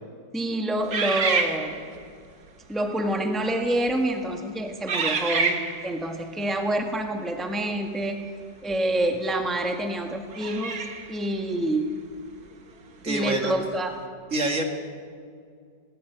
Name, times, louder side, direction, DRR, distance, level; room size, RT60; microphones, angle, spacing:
voice 1, 0.3-1.7 2.7-8.2 8.6-11.9 13.0-13.9, right 1 dB, ahead, 3 dB, 1.5 m, -27 dB
sound 1, 0.9-2.1 2.9-3.1 3.8-4.1 4.9-6.0 8.7-8.8 10.3-11.2, right 4 dB, 65° right, 2.1 m, -27 dB
voice 2, 13.0-13.5 14.3-14.6, right 2 dB, 50° right, 3 dB, 2.5 m, -26 dB
18.5 x 18.5 x 8.1 m, 2.2 s
omnidirectional pair, 1.8 m